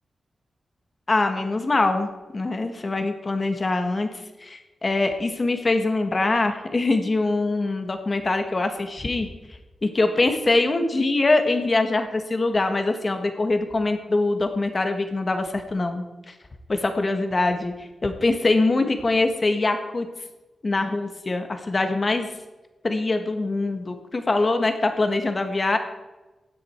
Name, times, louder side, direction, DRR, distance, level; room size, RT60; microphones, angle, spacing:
voice 1, 1.1-4.1 4.4-9.3 9.8-16.0 16.7-20.1 20.6-22.3 22.8-25.8, left 2 dB, 35° left, 7 dB, 1.6 m, -23 dB
16.0 x 9.7 x 4.6 m, 1.1 s
wide cardioid pair, 110°, 0 cm